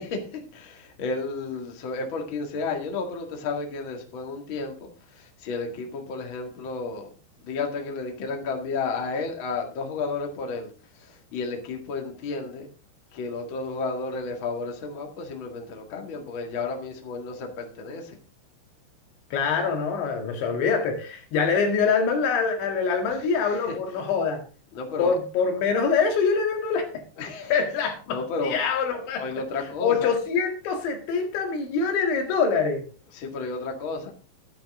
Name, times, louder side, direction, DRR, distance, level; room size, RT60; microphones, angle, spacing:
voice 1, 0.0-7.1 7.4-12.7 13.1-18.2 23.1-23.7 24.7-25.2 27.2-27.6 28.1-28.6 29.2-30.1 33.1-34.1, left 4 dB, 40° left, 2 dB, 1.9 m, -32 dB
voice 2, 19.3-24.4 25.0-27.0 27.5-29.2 29.8-32.9, left 5 dB, 80° left, 3 dB, 4.3 m, -24 dB
12.5 x 10.5 x 3.7 m, 0.36 s
omnidirectional pair, 5.3 m